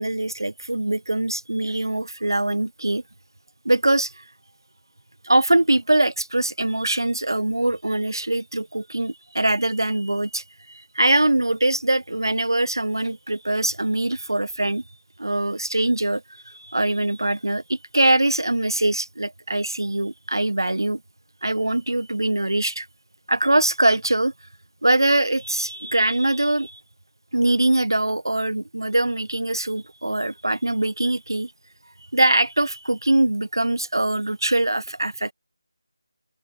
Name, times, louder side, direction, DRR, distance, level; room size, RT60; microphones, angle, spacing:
voice 1, 0.0-3.0 3.6-4.2 5.2-14.8 15.2-21.0 21.4-22.9 23.3-24.3 24.8-26.8 27.3-31.5 32.1-35.3, right 1 dB, 70° right, 0.3 m, -22 dB
open air
figure-of-eight pair, 165°, 2 cm